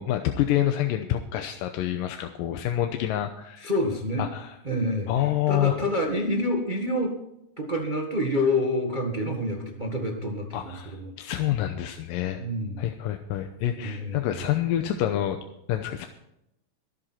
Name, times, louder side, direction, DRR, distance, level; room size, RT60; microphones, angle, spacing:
voice 1, 0.0-3.7 4.2-4.6 5.1-5.8 10.5-12.4 12.8-15.4 15.7-16.1, left 12 dB, 85° left, 6 dB, 2.5 m, -27 dB
voice 2, 3.6-4.3 4.6-7.1 7.6-11.3 12.4-12.8 13.7-14.4, left 1 dB, 55° right, 1 dB, 0.5 m, -28 dB
24.0 x 8.0 x 4.4 m, 0.83 s
omnidirectional pair, 4.0 m